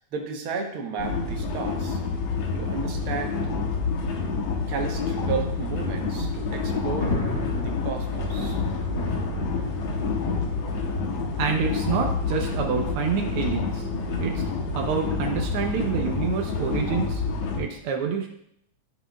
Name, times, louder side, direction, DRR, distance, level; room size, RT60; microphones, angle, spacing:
voice 1, 0.1-2.0 2.5-3.4 4.7-7.2 7.5-8.6, right 5 dB, 60° right, 2 dB, 1.5 m, -33 dB
sound 1, 1.0-17.6, left 4 dB, 70° left, 2.0 m, -28 dB
Thunder, 6.4-17.1, left 2 dB, 45° left, 1.7 m, -37 dB
voice 2, 11.4-13.9 14.2-14.4 14.7-17.2 17.6-18.3, right 6 dB, 80° right, 2 dB, 1.2 m, -27 dB
13.5 x 5.8 x 2.3 m, 0.74 s
omnidirectional pair, 3.4 m